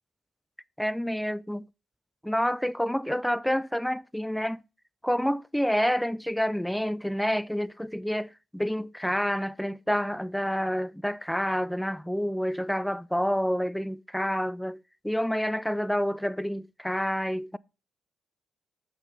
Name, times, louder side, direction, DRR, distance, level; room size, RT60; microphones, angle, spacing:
voice 1, 0.8-1.7 2.2-4.6 5.0-14.8 15.0-17.6, equal, 5° left, 0.3 m, -28 dB
7.2 x 6.0 x 4.0 m
cardioid pair, 90°, 0 cm